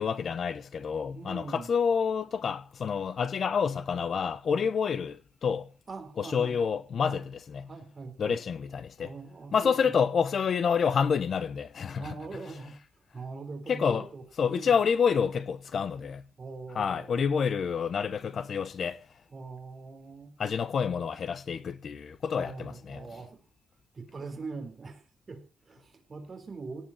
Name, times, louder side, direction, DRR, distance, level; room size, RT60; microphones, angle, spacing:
voice 1, 0.0-5.7 6.2-7.7 8.2-9.1 9.5-12.1 13.7-14.0 14.4-16.2 16.7-19.0 20.4-23.0, left 6 dB, 50° left, 0.9 m, -28 dB
voice 2, 1.1-1.7 5.9-6.6 7.0-7.2 7.7-8.4 9.0-9.9 12.0-12.8 13.1-14.8 16.4-17.5 19.3-20.3 22.4-23.4 23.9-25.0 25.3-26.8, right 4 dB, 30° right, 3.9 m, -42 dB
18.0 x 6.0 x 9.8 m
wide cardioid pair, 145°, 0 cm